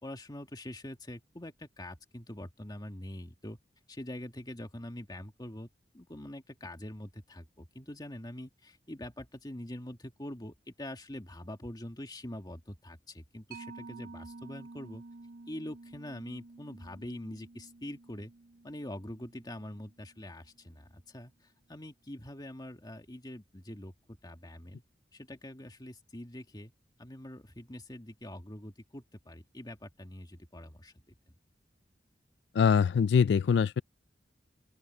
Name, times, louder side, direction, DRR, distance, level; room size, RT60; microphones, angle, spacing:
voice 1, 0.0-3.6 3.9-5.7 5.9-15.0 15.5-18.3 18.6-23.9 24.2-24.8 25.1-26.7 27.0-31.2, left 1 dB, 25° left, 1.9 m, -44 dB
Mallet percussion, 13.5-20.6, right 3 dB, 55° right, 0.6 m, -51 dB
voice 2, 32.5-33.8, left 6 dB, 70° left, 0.3 m, -23 dB
open air
head